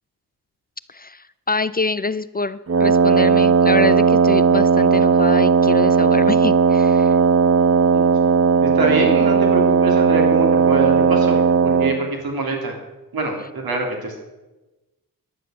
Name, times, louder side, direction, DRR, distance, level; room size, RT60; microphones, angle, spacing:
voice 1, 0.9-7.2, left 3 dB, 25° left, 15 dB, 0.5 m, -26 dB
Wind instrument woodwind instrument, 2.7-12.0, right 6 dB, 40° right, 1.1 m, -16 dB
voice 2, 8.6-12.7 13.1-14.2, right 3 dB, 75° right, 2 dB, 3.4 m, -24 dB
11.0 x 10.0 x 6.5 m, 1.1 s
cardioid pair, 65°, 37 cm